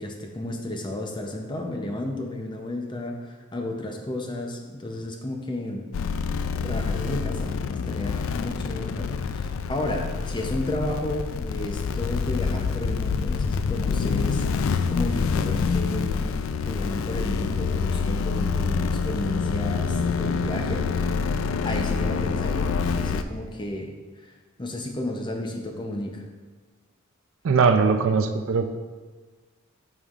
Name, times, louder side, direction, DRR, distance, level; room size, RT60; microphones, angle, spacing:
voice 1, 0.0-5.8 6.6-16.3 16.7-21.1 21.6-23.9 24.2-24.3 24.6-26.2, left 1 dB, 20° left, 2 dB, 0.6 m, -32 dB
sound 1, 5.9-23.2, left 5 dB, 65° left, 0.3 m, -26 dB
voice 2, 27.4-28.8, right 5 dB, 65° right, 8 dB, 0.4 m, -20 dB
8.2 x 5.3 x 2.4 m, 1.4 s
head